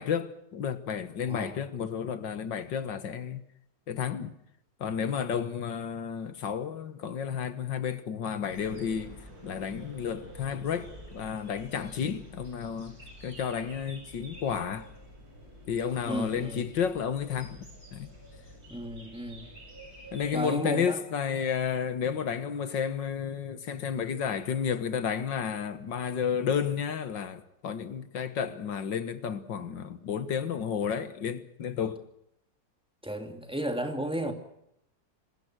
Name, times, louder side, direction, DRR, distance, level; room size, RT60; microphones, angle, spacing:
voice 1, 0.0-3.4 3.9-4.3 4.8-13.0 13.2-14.9 15.7-17.6 17.9-18.1 20.1-32.0, left 7 dB, 80° left, 2.1 m, -32 dB
sound 1, 8.5-20.3, equal, 55° right, 7.7 m, -49 dB
voice 2, 16.0-16.6 18.7-19.5 20.3-21.0 33.0-34.3, right 1 dB, 5° right, 2.6 m, -33 dB
26.0 x 20.5 x 6.3 m
omnidirectional pair, 2.0 m